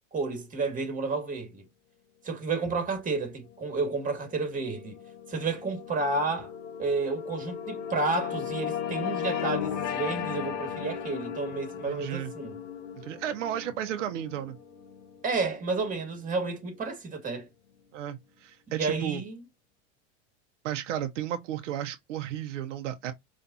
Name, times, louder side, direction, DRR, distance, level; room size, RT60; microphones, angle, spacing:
voice 1, 0.1-1.7 2.2-5.0 5.3-6.5 6.8-12.6 15.2-17.5 18.7-19.4, right 3 dB, 20° right, 2.3 m, -31 dB
sound 1, 3.7-16.3, left 8 dB, 90° left, 1.0 m, -36 dB
voice 2, 11.9-12.3 13.0-14.6 17.9-19.2 20.6-23.1, right 11 dB, 80° right, 0.9 m, -33 dB
5.2 x 3.3 x 2.7 m
hypercardioid pair, 100°, 36 cm